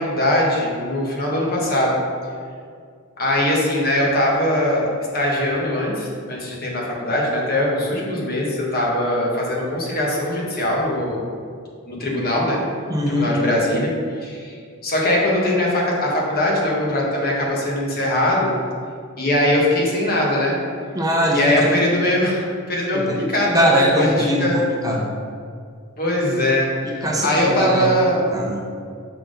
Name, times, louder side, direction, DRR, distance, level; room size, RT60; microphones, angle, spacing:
voice 1, 0.0-2.0 3.2-11.2 11.9-12.6 13.1-13.9 14.2-14.5 14.8-18.5 19.2-20.6 21.3-23.6 23.9-24.6 26.0-28.2, left 1 dB, 45° left, -3 dB, 1.3 m, -21 dB
voice 2, 12.9-13.3 20.9-21.7 22.9-23.2 23.5-25.1 26.8-28.0 28.3-28.6, equal, 15° right, -2 dB, 0.6 m, -21 dB
5.8 x 4.1 x 5.1 m, 2.1 s
head